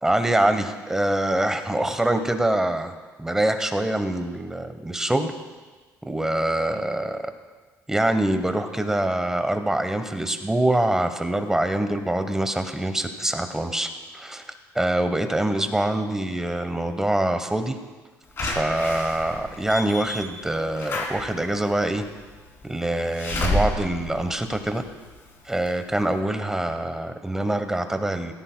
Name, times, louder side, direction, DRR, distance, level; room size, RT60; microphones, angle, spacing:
voice 1, 0.0-2.9 3.2-5.3 6.0-7.2 7.9-14.4 14.7-17.8 18.4-22.0 22.6-24.8 25.5-28.3, right 1 dB, 10° right, 8 dB, 1.0 m, -24 dB
Slam / Alarm, 18.4-25.2 25.7-25.8 26.0-26.1, left 1 dB, 45° left, 3.1 m, -30 dB
17.5 x 14.0 x 2.2 m, 1.4 s
cardioid pair, 105°, 6 cm